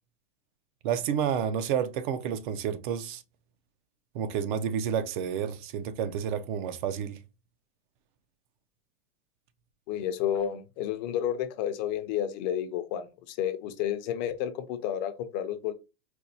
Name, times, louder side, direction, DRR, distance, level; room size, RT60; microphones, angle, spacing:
voice 1, 0.8-3.2 4.1-7.2, right 8 dB, 55° right, 0.5 m, -30 dB
voice 2, 9.9-15.7, left 10 dB, 45° left, 0.5 m, -31 dB
4.3 x 2.2 x 2.6 m
supercardioid pair, 145°, 31 cm